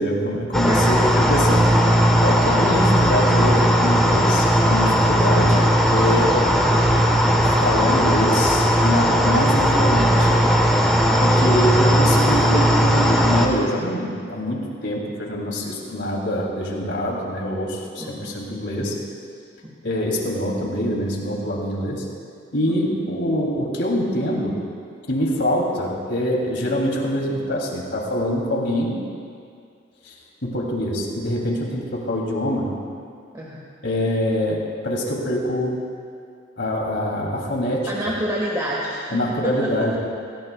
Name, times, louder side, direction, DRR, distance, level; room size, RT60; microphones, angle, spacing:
voice 1, 0.0-6.4 7.6-10.3 11.2-18.9 19.8-22.0 22.5-24.6 25.1-29.0 30.0-30.1 30.4-32.7 33.8-35.8 36.6-37.9 39.1-39.9, equal, 70° left, -2 dB, 3.0 m, -24 dB
sound 1, 0.5-13.5, equal, ahead, 1.2 m, -17 dB
voice 2, 0.6-0.9 11.0-11.3 18.0-18.4 19.6-19.7 22.7-22.9 33.3-33.7 37.9-39.9, equal, 20° right, -5 dB, 1.6 m, -29 dB
26.0 x 16.0 x 2.4 m, 2.3 s
head